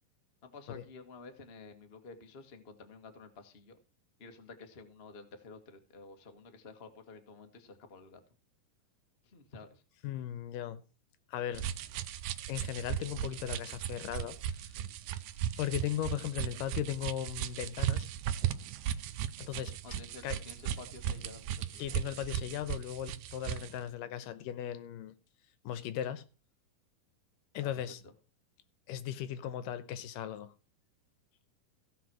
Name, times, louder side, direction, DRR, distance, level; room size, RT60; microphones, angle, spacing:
voice 1, 0.4-3.8 4.2-8.2 9.2-9.8 19.8-22.3 27.6-27.7 28.0-28.1, left 4 dB, 40° left, 0.8 m, -51 dB
voice 2, 10.0-10.8 11.3-11.7 12.5-14.4 15.6-18.1 19.4-19.8 20.2-20.4 21.8-25.1 25.6-26.2 27.5-28.0 28.9-30.5, left 11 dB, 80° left, 2.5 m, -37 dB
sound 1, 11.5-23.8, right 11 dB, 75° right, 2.2 m, -37 dB
15.5 x 5.9 x 6.2 m
omnidirectional pair, 4.0 m